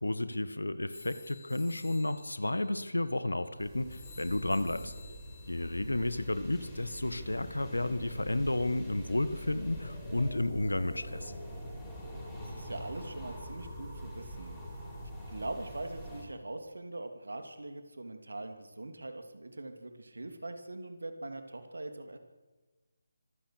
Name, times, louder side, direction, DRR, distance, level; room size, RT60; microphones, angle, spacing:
voice 1, 0.0-4.9 5.5-11.3, left 2 dB, 75° left, 13 dB, 1.6 m, -32 dB
sound 1, 0.9-7.0, left 5 dB, 35° left, 6.5 m, -56 dB
sound 2, 3.6-16.2, equal, 5° left, 5.8 m, -44 dB
voice 2, 12.4-14.6 15.0-22.2, right 2 dB, 70° right, 7 dB, 2.9 m, -42 dB
25.0 x 16.0 x 6.7 m, 1.3 s
figure-of-eight pair, 150°, 0 cm